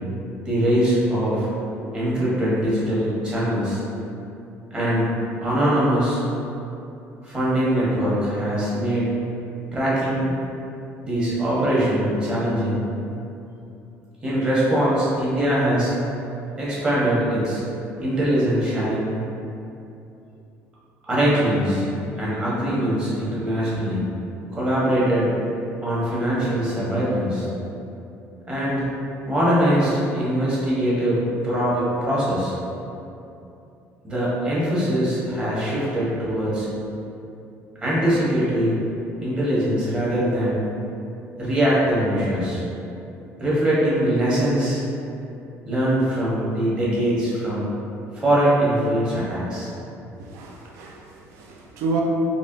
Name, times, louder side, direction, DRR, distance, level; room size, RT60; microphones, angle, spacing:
voice 1, 0.4-1.5 1.9-3.8 4.7-5.1 5.4-6.2 7.2-9.1 9.7-10.3 11.0-12.8 14.2-15.9 16.6-17.6 18.0-19.1 21.0-21.9 22.2-24.0 24.5-25.3 25.8-27.5 28.5-28.8 29.2-32.5 34.0-36.7 37.8-38.7 39.2-40.7 41.4-42.6 43.4-44.8 45.6-47.7 48.1-49.7, right 1 dB, 20° right, -8 dB, 1.0 m, -22 dB
voice 2, 50.2-52.0, right 4 dB, 65° right, -1 dB, 0.5 m, -30 dB
4.2 x 2.9 x 2.6 m, 2.8 s
cardioid pair, 165°, 5 cm